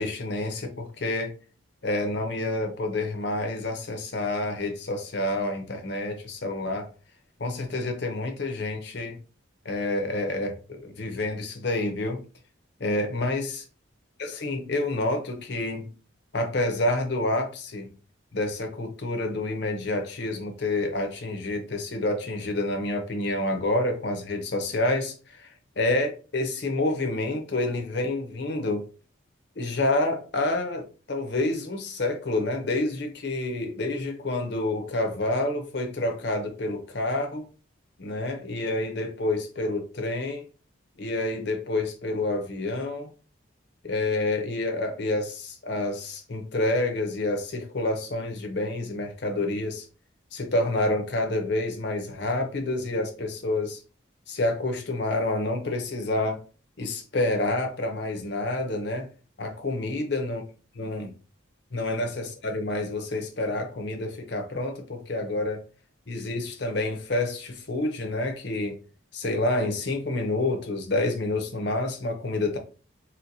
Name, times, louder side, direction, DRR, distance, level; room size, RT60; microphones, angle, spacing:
voice 1, 0.0-1.3 1.8-6.9 7.4-9.2 9.6-12.2 12.8-13.6 14.4-15.9 16.3-17.9 18.3-28.8 29.6-37.4 38.0-40.5 41.0-43.1 43.8-49.8 50.3-53.8 54.3-56.4 56.8-59.1 59.4-60.4 60.8-61.1 61.7-65.6 66.1-68.8 69.1-72.6, left 2 dB, 55° left, 5 dB, 0.7 m, -28 dB
4.3 x 2.2 x 2.6 m, 0.35 s
head